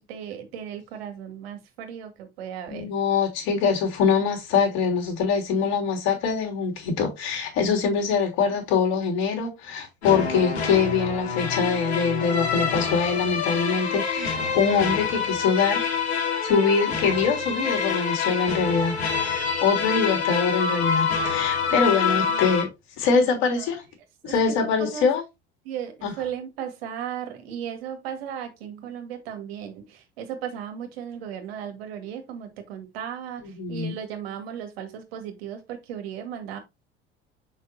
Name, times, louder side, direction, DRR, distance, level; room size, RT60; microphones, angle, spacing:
voice 1, 0.0-2.9 14.2-14.7 21.9-22.5 23.5-23.6 24.2-25.1 25.6-33.4 33.7-36.6, right 8 dB, 70° right, 2.1 m, -36 dB
voice 2, 2.7-15.8 16.4-22.7 23.0-23.8 24.2-25.2 26.0-26.1 33.4-33.9, left 5 dB, 60° left, 3.5 m, -24 dB
sound 1, 10.0-22.6, left 6 dB, 80° left, 2.5 m, -26 dB
6.8 x 5.7 x 2.8 m
figure-of-eight pair, 70°, 32 cm